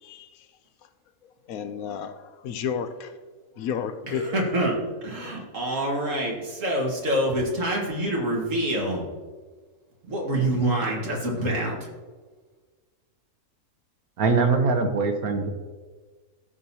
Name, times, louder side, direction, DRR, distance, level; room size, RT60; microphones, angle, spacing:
voice 1, 0.0-0.5 1.5-3.2 3.6-4.3 6.2-6.3, left 7 dB, 75° left, 1.1 m, -32 dB
voice 2, 4.1-4.8 5.0-9.0 10.1-11.8, right 1 dB, 60° right, 2.1 m, -26 dB
voice 3, 14.2-15.5, right 4 dB, 75° right, 1.4 m, -22 dB
14.5 x 6.4 x 2.8 m
omnidirectional pair, 1.6 m